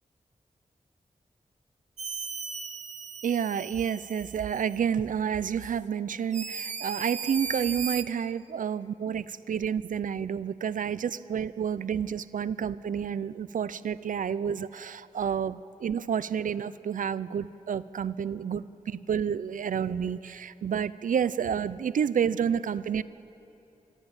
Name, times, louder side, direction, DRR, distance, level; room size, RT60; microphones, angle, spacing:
sound 1, 2.0-4.8 5.6-5.7 6.3-8.0, right 5 dB, 65° right, 0.9 m, -37 dB
voice 1, 3.2-23.0, right 8 dB, 85° right, 16 dB, 0.5 m, -30 dB
24.5 x 12.5 x 8.8 m, 2.9 s
wide cardioid pair, 75°, 13 cm